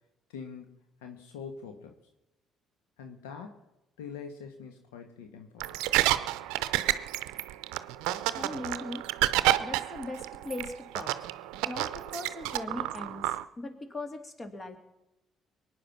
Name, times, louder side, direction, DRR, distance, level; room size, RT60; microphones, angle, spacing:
voice 1, 0.3-1.9 3.0-3.6 4.0-5.8, left 6 dB, 85° left, 5 dB, 1.4 m, -44 dB
sound 1, 5.6-13.4, right 15 dB, 80° right, 0.6 m, -30 dB
voice 2, 8.3-9.0 9.6-11.3 11.7-14.8, left 2 dB, 35° left, 7 dB, 2.8 m, -39 dB
22.5 x 9.5 x 6.0 m, 0.96 s
hypercardioid pair, 55°, 0 cm